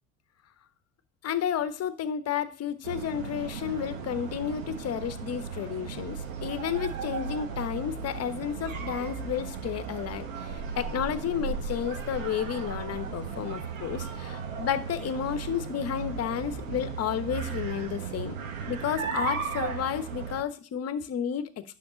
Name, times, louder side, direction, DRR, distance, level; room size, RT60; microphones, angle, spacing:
voice 1, 1.2-18.3 18.7-21.5, left 9 dB, 40° left, 11 dB, 1.1 m, -32 dB
sound 1, 2.8-20.4, right 6 dB, 75° right, 1.3 m, -36 dB
10.0 x 6.1 x 4.0 m, 0.38 s
hypercardioid pair, 70°, 40 cm